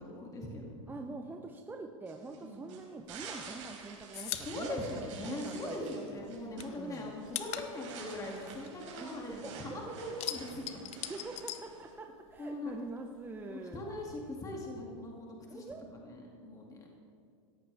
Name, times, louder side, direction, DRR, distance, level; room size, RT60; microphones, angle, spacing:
voice 1, 0.0-0.7 2.4-2.7 4.4-10.7 12.4-12.8 13.5-15.6 16.0-16.9, left 1 dB, 20° left, -1 dB, 2.4 m, -41 dB
voice 2, 0.9-6.3 6.8-7.2 9.0-10.1 11.1-13.8 15.4-15.9, right 3 dB, 10° right, 3 dB, 0.8 m, -45 dB
sound 1, 2.1-11.9, right 5 dB, 70° right, 3.8 m, -49 dB
sound 2, 3.1-5.9 6.2-9.5 9.8-12.4 12.7-13.8, left 12 dB, 40° left, 0.9 m, -42 dB
17.5 x 14.0 x 3.5 m, 2.4 s
hypercardioid pair, 110°, 17 cm